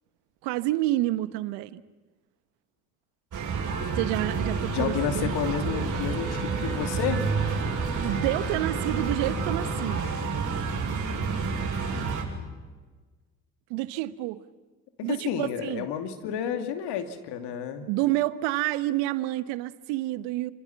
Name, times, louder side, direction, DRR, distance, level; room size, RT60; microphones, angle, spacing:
voice 1, 0.4-1.8 3.9-5.3 8.0-10.1 13.7-14.4 15.0-15.9 17.8-20.5, right 16 dB, 70° right, 1.2 m, -29 dB
sound 1, 3.3-12.2, right 4 dB, 45° right, 7.6 m, -29 dB
voice 2, 4.7-7.2 15.1-17.9, left 9 dB, 65° left, 2.7 m, -30 dB
Wind instrument woodwind instrument, 5.9-10.2, equal, ahead, 6.2 m, -42 dB
29.5 x 26.5 x 5.9 m
hypercardioid pair, 60°, 45 cm